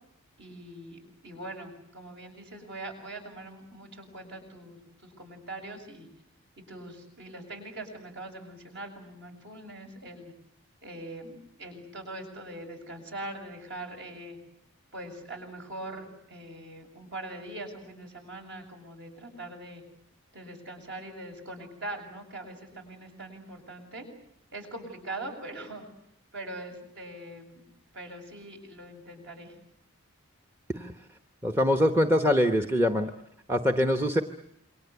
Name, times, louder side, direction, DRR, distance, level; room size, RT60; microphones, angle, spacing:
voice 1, 0.4-6.1 6.7-10.3 10.8-14.4 14.9-19.8 20.3-24.1 24.5-25.9 26.3-27.6 27.9-29.6 33.8-33.9, right 1 dB, 55° right, 4 dB, 7.4 m, -42 dB
voice 2, 31.4-33.1 33.5-34.2, equal, 10° right, 6 dB, 1.0 m, -24 dB
28.0 x 24.0 x 8.3 m, 0.75 s
head